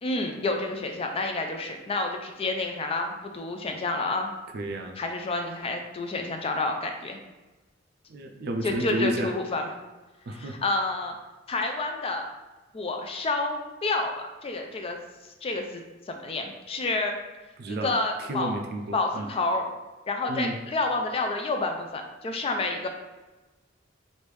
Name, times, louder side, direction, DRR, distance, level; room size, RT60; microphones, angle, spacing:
voice 1, 0.0-4.3 5.0-7.2 8.6-9.7 10.3-11.1 11.5-12.3 12.7-14.1 14.4-15.0 15.4-17.1 17.7-18.6 18.9-19.7 20.1-22.9, left 2 dB, 30° left, 4 dB, 0.3 m, -29 dB
voice 2, 4.5-5.0 8.1-9.3 10.3-10.6 17.6-17.9 18.2-19.3 20.3-20.6, right 1 dB, 55° right, 4 dB, 0.4 m, -31 dB
3.3 x 2.6 x 3.1 m, 1.1 s
head